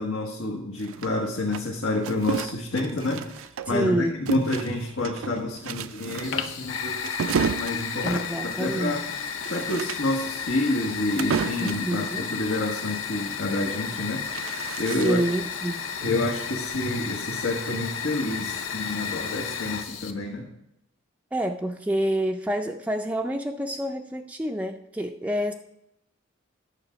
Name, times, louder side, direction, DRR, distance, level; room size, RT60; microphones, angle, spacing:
voice 1, 0.0-8.1 8.4-9.0 9.5-14.3 14.8-15.2 16.0-20.5, left 2 dB, 85° left, -1 dB, 1.3 m, -28 dB
sound 1, 0.8-3.9 4.3-11.9 13.8-15.4, right 6 dB, 80° right, 0.4 m, -33 dB
voice 2, 3.7-4.2 8.0-9.0 11.6-12.3 14.9-15.9 21.3-25.5, right 1 dB, 5° right, 4 dB, 0.3 m, -28 dB
Fire, 6.2-20.1, left 7 dB, 70° left, 0.7 m, -33 dB
9.8 x 6.9 x 5.0 m, 0.83 s
head